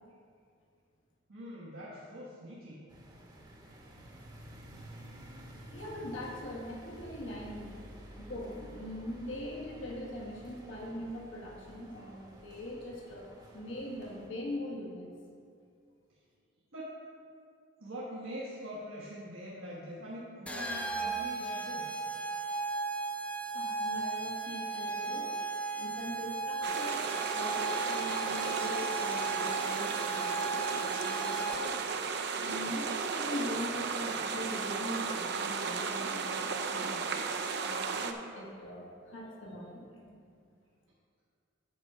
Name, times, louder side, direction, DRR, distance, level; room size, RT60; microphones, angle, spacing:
voice 1, 1.3-2.8 8.0-8.1 16.7-17.0 17.8-22.0, equal, 85° right, -8 dB, 1.4 m, -43 dB
sound 1, 2.9-14.3, equal, 20° right, 0.9 m, -51 dB
voice 2, 5.7-7.8 8.2-15.1 23.5-25.4 25.7-27.0 27.3-31.8 32.4-37.1 37.6-40.2, left 1 dB, 70° left, -2 dB, 1.5 m, -42 dB
sound 2, 20.5-31.9, right 4 dB, 5° left, 0.4 m, -36 dB
sound 3, 26.6-38.1, right 5 dB, 55° right, 0.5 m, -34 dB
8.3 x 4.8 x 6.0 m, 2.3 s
head